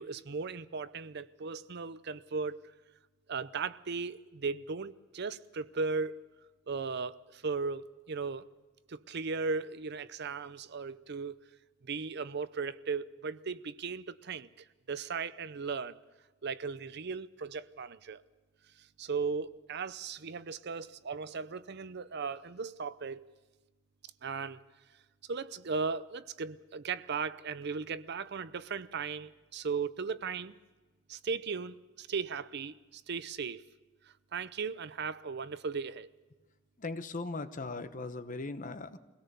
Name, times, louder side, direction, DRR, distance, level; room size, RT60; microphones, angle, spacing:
voice 1, 0.0-2.6 3.3-6.1 6.7-8.4 8.9-11.4 11.8-14.5 14.9-16.0 16.4-18.2 19.0-23.2 24.2-24.6 25.3-30.5 31.1-33.6 34.3-36.1, right 5 dB, 55° right, 0.6 m, -37 dB
voice 2, 36.8-39.0, left 3 dB, 40° left, 1.0 m, -38 dB
23.5 x 17.5 x 6.8 m
head